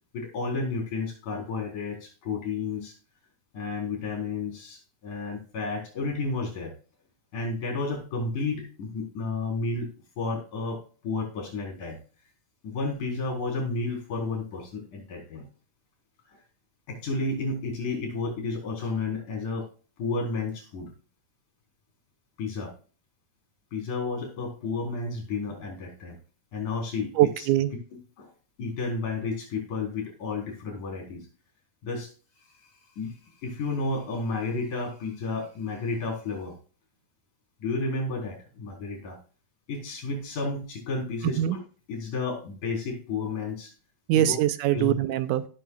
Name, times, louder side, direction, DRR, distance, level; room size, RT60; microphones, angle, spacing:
voice 1, 0.1-2.9 3.5-6.7 7.3-9.9 10.2-10.8 11.0-12.0 12.6-15.5 16.9-19.7 20.0-20.9 22.4-22.7 23.7-26.2 26.5-27.3 28.2-28.3 28.6-31.3 31.8-32.1 33.0-33.2 33.4-36.5 37.6-39.2 39.7-41.4 41.9-43.7 44.2-44.3 44.7-44.9, left 3 dB, 75° left, 1 dB, 5.8 m, -31 dB
voice 2, 27.2-27.7 41.2-41.6 44.1-45.5, right 12 dB, 85° right, 12 dB, 2.2 m, -23 dB
16.5 x 7.0 x 2.4 m, 0.37 s
omnidirectional pair, 3.6 m